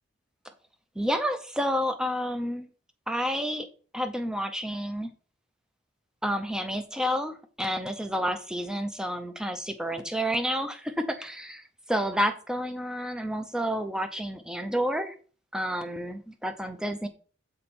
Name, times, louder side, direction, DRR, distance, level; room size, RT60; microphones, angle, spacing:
voice 1, 1.0-2.7 3.1-3.7 3.9-5.1 6.2-15.1 15.5-17.1, equal, 5° right, 8 dB, 0.5 m, -30 dB
6.9 x 4.4 x 4.2 m, 0.40 s
head